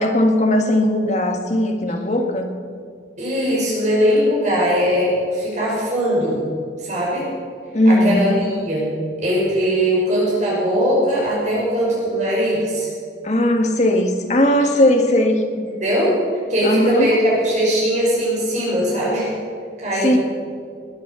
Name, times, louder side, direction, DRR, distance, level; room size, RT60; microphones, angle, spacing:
voice 1, 0.0-2.5 7.7-8.3 13.2-15.4 16.6-17.1 20.0-20.2, left 1 dB, 40° left, 4 dB, 1.7 m, -17 dB
voice 2, 3.2-6.4 6.8-7.3 7.9-8.9 9.2-12.9 15.8-16.1 16.5-19.3 19.8-20.2, equal, 40° right, -6 dB, 5.7 m, -20 dB
20.0 x 9.6 x 7.0 m, 2.2 s
head